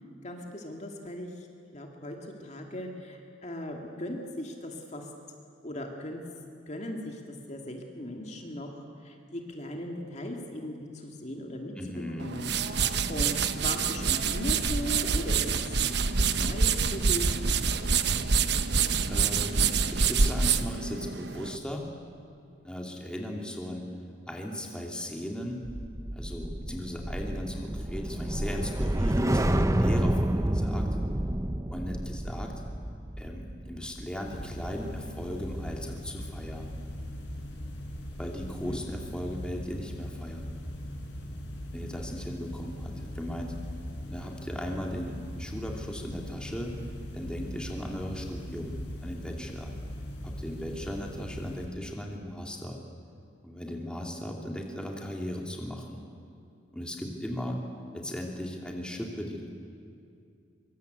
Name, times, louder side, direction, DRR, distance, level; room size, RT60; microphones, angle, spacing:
voice 1, 0.2-1.5 1.7-5.1 5.6-6.2 6.7-15.6 16.3-17.4 38.6-38.8, left 1 dB, 35° left, 2 dB, 2.3 m, -38 dB
voice 2, 11.8-12.3 19.1-19.6 19.9-21.9 22.6-23.8 24.3-25.6 26.1-30.9 31.7-32.5 33.2-36.7 38.2-40.5 41.7-43.5 44.1-46.7 47.1-48.8 49.0-49.7 50.2-52.8 53.4-56.0 56.7-57.6 57.9-59.5, equal, 5° left, 0 dB, 2.6 m, -37 dB
sound 1, 12.2-21.6, right 5 dB, 60° right, 1.0 m, -26 dB
sound 2, 25.6-36.1 36.4-36.7, right 1 dB, 15° right, 0.7 m, -29 dB
sound 3, 34.2-51.7, equal, 70° left, 5.5 m, -40 dB
24.5 x 24.0 x 8.2 m, 2.4 s
head